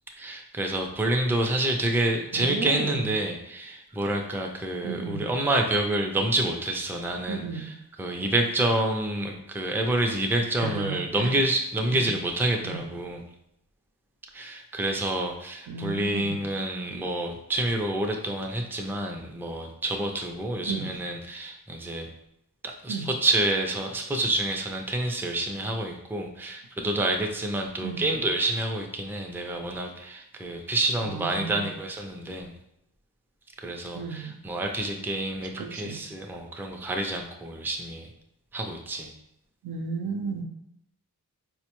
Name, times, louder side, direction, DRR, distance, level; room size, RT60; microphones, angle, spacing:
voice 1, 0.1-13.2 14.3-22.1 22.6-32.6 33.6-38.1 38.5-39.1, right 1 dB, 5° right, 2 dB, 0.4 m, -28 dB
voice 2, 2.3-3.2 4.8-5.3 7.3-7.8 10.6-11.4 11.9-12.1 12.6-12.8 15.7-16.4 20.7-20.9 22.9-23.1 27.8-28.1 31.0-31.7 33.9-34.4 35.4-36.0 39.6-40.4, right 5 dB, 80° right, 4 dB, 0.5 m, -34 dB
4.3 x 2.1 x 2.9 m, 0.82 s
wide cardioid pair, 90°, 36 cm